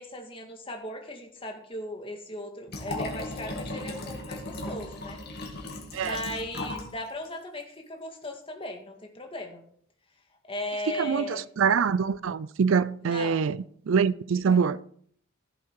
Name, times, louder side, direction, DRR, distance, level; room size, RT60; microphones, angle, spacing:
voice 1, 0.0-5.2 6.0-9.6 10.5-11.4 13.0-13.5, left 1 dB, 25° left, 2.0 m, -37 dB
Liquid, 2.7-6.9 7.2-7.3, left 1 dB, 50° left, 2.4 m, -36 dB
voice 2, 11.0-14.8, right 6 dB, 65° right, 0.4 m, -25 dB
15.0 x 7.7 x 4.7 m
head